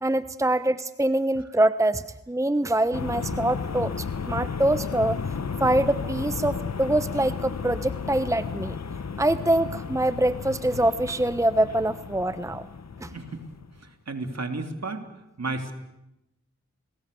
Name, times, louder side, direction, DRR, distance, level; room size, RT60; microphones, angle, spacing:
voice 1, 0.0-5.2 5.6-8.8 9.2-12.7 13.0-13.1, right 1 dB, 10° right, 13 dB, 0.9 m, -24 dB
sound 1, 2.9-13.8, left 5 dB, 60° left, 1.3 m, -33 dB
voice 2, 13.1-13.4 13.8-15.0 15.4-15.7, right 3 dB, 55° right, 6 dB, 3.4 m, -33 dB
29.5 x 20.5 x 7.0 m, 0.90 s
cardioid pair, 40°, 31 cm